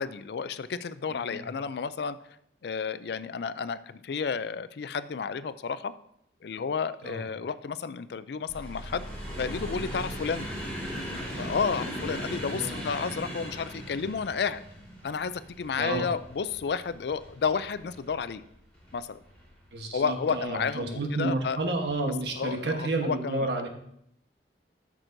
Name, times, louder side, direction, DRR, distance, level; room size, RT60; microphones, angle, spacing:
voice 1, 0.0-2.2 2.6-5.9 6.4-9.1 9.4-10.5 11.4-14.6 15.0-18.4 18.9-19.2 19.9-21.6 22.3-23.5, left 5 dB, 70° left, 14 dB, 0.4 m, -31 dB
voice 2, 1.1-1.5 7.0-7.2 12.3-12.9 15.8-16.1 19.7-23.7, right 2 dB, 75° right, 3 dB, 1.2 m, -31 dB
sound 1, 8.5-19.6 20.2-20.9 21.8-22.0 22.3-22.4, equal, 10° left, 3.5 m, -39 dB
13.0 x 6.1 x 2.6 m, 0.72 s
head